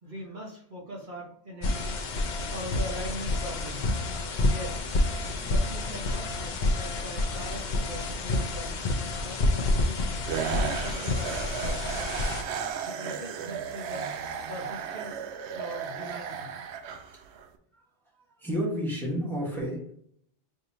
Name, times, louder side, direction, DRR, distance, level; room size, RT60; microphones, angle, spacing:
voice 1, 0.0-1.9 2.5-3.8 4.4-5.0 5.4-8.8 9.2-10.0 10.5-12.1 12.8-14.1 14.5-15.2 15.4-16.5, equal, 50° right, -3 dB, 1.2 m, -41 dB
sound 1, 1.6-12.4, left 2 dB, 50° left, 0.6 m, -29 dB
voice 2, 5.1-5.6 9.1-9.3 10.6-10.7 11.0-11.2 12.6-12.7 17.7-17.8 18.4-19.9, equal, ahead, -4 dB, 1.1 m, -34 dB
sound 2, 10.2-17.5, right 7 dB, 85° right, 0.8 m, -35 dB
5.1 x 3.0 x 2.7 m, 0.66 s
omnidirectional pair, 1.1 m